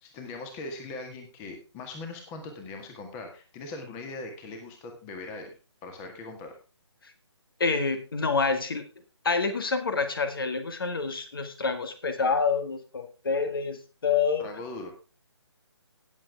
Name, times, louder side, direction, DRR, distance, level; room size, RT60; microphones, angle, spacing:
voice 1, 0.0-5.5 5.8-6.6 14.4-14.9, left 3 dB, 15° left, 5 dB, 1.8 m, -40 dB
voice 2, 7.6-8.8 9.2-14.5, left 4 dB, 50° left, 9 dB, 2.0 m, -27 dB
18.0 x 7.8 x 3.4 m, 0.31 s
figure-of-eight pair, 145°, 15 cm